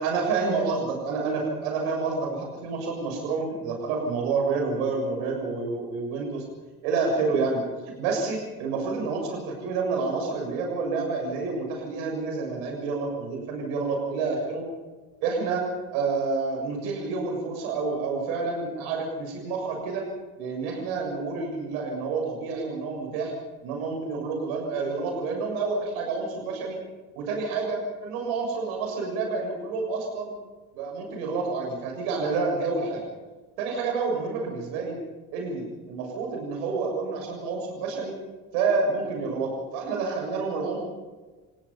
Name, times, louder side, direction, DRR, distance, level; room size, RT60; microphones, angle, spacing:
voice 1, 0.0-6.4 6.8-7.6 8.0-14.6 15.2-15.6 15.9-20.1 20.4-23.3 23.6-26.8 27.2-30.3 30.7-33.0 33.6-35.0 35.3-38.1 38.5-40.8, right 4 dB, 65° right, 1 dB, 6.9 m, -28 dB
28.5 x 16.5 x 5.8 m, 1.3 s
figure-of-eight pair, 55°, 45 cm